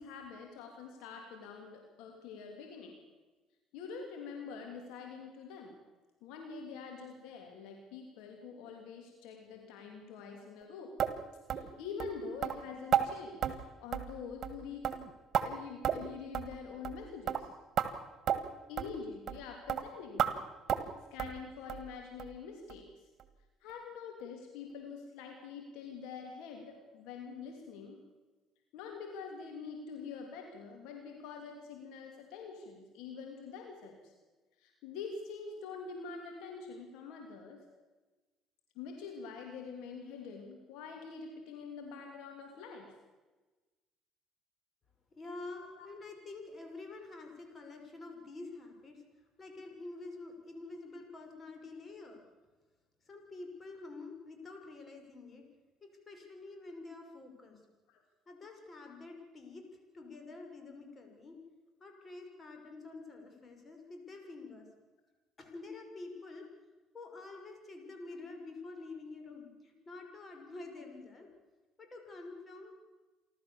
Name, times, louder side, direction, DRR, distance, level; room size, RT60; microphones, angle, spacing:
voice 1, 0.0-3.0 3.7-5.8 6.2-10.9 11.5-13.5 13.8-14.9 15.4-17.5 18.7-20.4 20.7-22.9 23.6-28.0 28.7-34.1 34.6-37.6 38.7-42.9 45.8-45.9 57.9-58.0, left 5 dB, 75° left, 2 dB, 3.0 m, -45 dB
sound 1, 11.0-11.1 11.5-11.7 12.0-12.1 12.4-12.6 12.9-13.1 13.4-13.6 13.9-14.2 14.4-14.6 14.8-15.5 15.8-16.1 16.3-16.5 16.8-17.0 17.3-17.4 17.8-17.9 18.3-18.4 18.8-18.9 19.3-19.4 19.7-19.8 20.2-20.3 20.7-20.9 21.2-21.4 21.7-21.9 22.2-22.3 22.7-22.8 23.2-23.3, right 9 dB, 55° right, 1.8 m, -31 dB
voice 2, 45.1-49.0 49.4-52.2 53.0-55.5 55.8-57.6 58.3-59.6 59.9-61.4 61.8-64.7 65.4-66.5 66.9-71.3 71.8-72.7, left 3 dB, 35° left, 3 dB, 5.8 m, -48 dB
28.5 x 12.5 x 7.1 m, 1.2 s
supercardioid pair, 70°, 0 cm